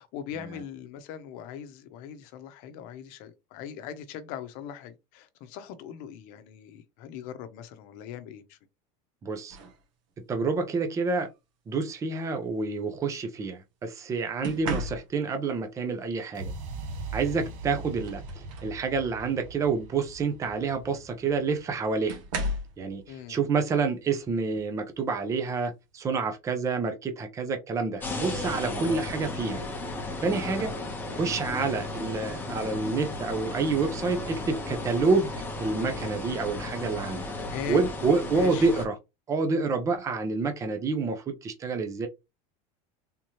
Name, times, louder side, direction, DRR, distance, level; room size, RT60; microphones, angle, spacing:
voice 1, 0.0-8.6 14.4-14.6 17.3-17.5 23.1-23.4 28.8-29.1 30.5-30.7 37.5-37.8 38.4-38.7, left 8 dB, 55° left, 0.8 m, -40 dB
voice 2, 9.2-9.6 10.3-11.3 11.7-16.5 17.1-22.2 22.8-29.6 30.2-30.7 31.2-35.3 35.6-37.3 37.7-39.0 39.3-42.1, right 4 dB, 20° right, 0.6 m, -28 dB
sound 1, 9.5-9.8 11.1-11.4 14.4-15.4 17.2-17.3 17.7-18.8 19.3-19.6 20.9-21.0 22.1-22.8 24.5-24.7 25.2-25.5, equal, 75° right, 1.4 m, -35 dB
sound 2, 16.3-24.3, right 3 dB, 50° right, 0.8 m, -42 dB
sound 3, 28.0-38.9, left 2 dB, 10° left, 0.8 m, -35 dB
3.6 x 2.9 x 2.9 m
supercardioid pair, 150°, 18 cm